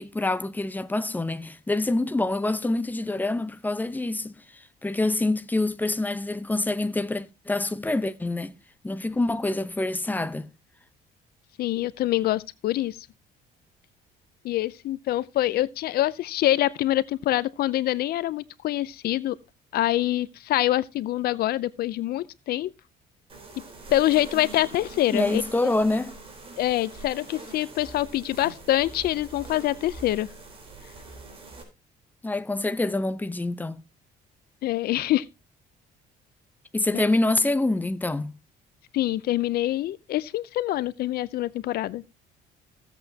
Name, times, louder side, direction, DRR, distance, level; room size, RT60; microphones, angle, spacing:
voice 1, 0.0-8.5 8.8-10.5 25.1-26.1 32.2-33.8 36.7-38.3, left 2 dB, 10° left, 0.8 m, -26 dB
voice 2, 11.6-13.0 14.4-19.4 19.7-22.7 23.9-25.4 26.6-30.3 34.6-35.3 36.9-37.0 38.9-42.0, left 14 dB, 65° left, 0.6 m, -25 dB
sound 1, 23.3-31.6, right 2 dB, 35° right, 3.9 m, -43 dB
16.0 x 8.1 x 2.8 m
cardioid pair, 110°, 17 cm